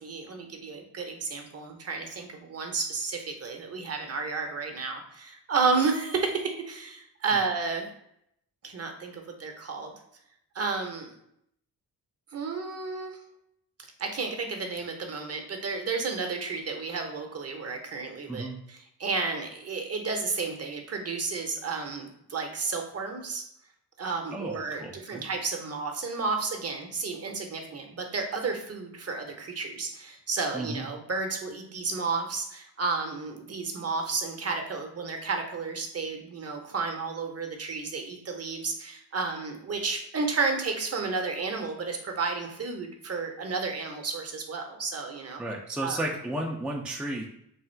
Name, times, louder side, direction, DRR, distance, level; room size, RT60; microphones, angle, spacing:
voice 1, 0.0-7.9 8.6-9.9 10.5-11.1 12.3-13.2 14.0-23.5 24.0-45.4 45.8-46.0, right 4 dB, 40° right, 3 dB, 0.7 m, -32 dB
voice 2, 24.3-25.2 30.5-30.9 45.4-47.3, right 1 dB, 5° right, 0 dB, 0.4 m, -33 dB
3.4 x 2.4 x 4.3 m, 0.74 s
cardioid pair, 105°, 38 cm